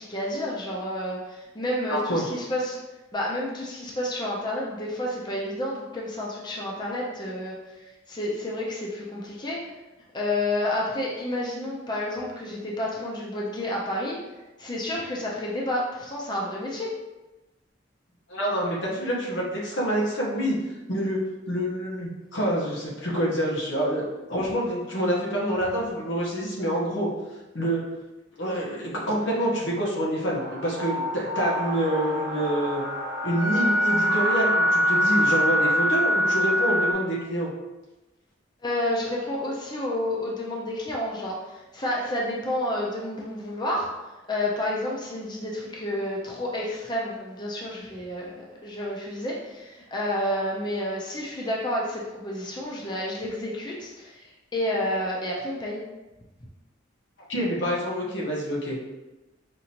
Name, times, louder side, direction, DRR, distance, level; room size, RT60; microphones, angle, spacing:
voice 1, 0.0-2.8 3.1-9.7 10.1-14.2 14.6-16.9 38.6-43.9 44.3-55.8, left 1 dB, 20° left, -3 dB, 0.6 m, -30 dB
voice 2, 1.9-2.2 18.3-20.6 20.9-24.0 24.3-27.1 27.5-27.8 28.4-32.8 33.2-37.5 57.3-59.0, equal, 75° left, -4 dB, 1.1 m, -27 dB
sound 1, 30.3-36.9, equal, 60° right, 1.0 m, -24 dB
5.1 x 2.7 x 2.9 m, 1.1 s
head